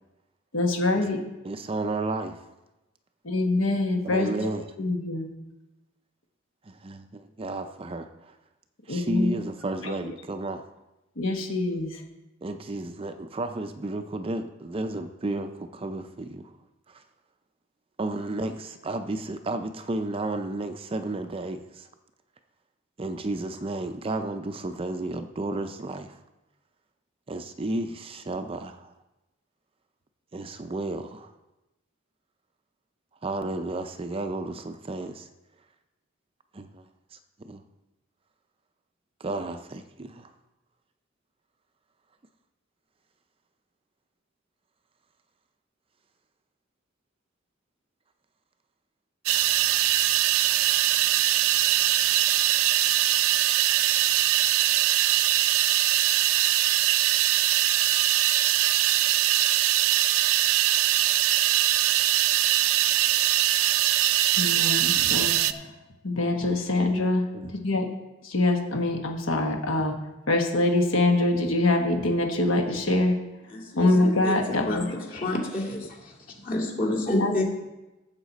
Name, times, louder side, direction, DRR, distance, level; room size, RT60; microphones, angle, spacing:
voice 1, 0.5-1.2 3.2-4.4 4.8-5.3 8.9-9.4 9.8-9.9 11.2-12.0 64.4-65.7 66.0-67.9 68.2-69.9 70.3-73.2 73.8-74.9 75.1-75.2 77.2-77.4, left 2 dB, 70° left, 3 dB, 1.2 m, -24 dB
voice 2, 1.4-2.4 4.0-4.6 6.7-8.3 8.9-10.7 12.4-16.5 16.9-17.0 18.0-21.9 23.0-26.2 27.3-28.9 30.3-31.3 33.2-35.3 36.5-36.8 37.1-37.6 39.2-40.3 67.3-67.5, right 2 dB, 25° right, 7 dB, 0.4 m, -32 dB
sound 1, 49.3-65.5, right 13 dB, 85° right, 0.5 m, -22 dB
voice 3, 73.5-76.1 76.4-77.4, left 1 dB, 40° left, -2 dB, 2.4 m, -29 dB
14.0 x 7.4 x 4.0 m, 1.0 s
head